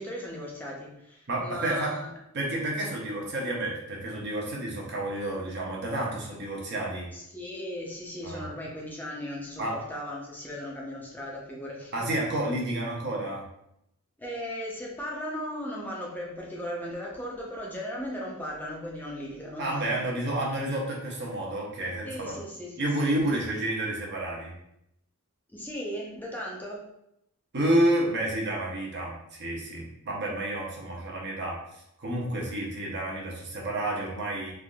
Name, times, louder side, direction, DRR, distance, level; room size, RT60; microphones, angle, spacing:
voice 1, 0.0-2.1 7.1-12.1 14.2-20.0 22.0-23.1 25.5-26.8, equal, 10° left, -3 dB, 0.5 m, -37 dB
voice 2, 1.3-2.0 2.3-7.1 8.2-8.5 9.6-9.8 11.9-13.4 19.6-22.4 22.8-24.5 27.5-31.6 32.0-34.5, right 1 dB, 50° right, -2 dB, 0.8 m, -30 dB
3.4 x 2.5 x 2.2 m, 0.79 s
head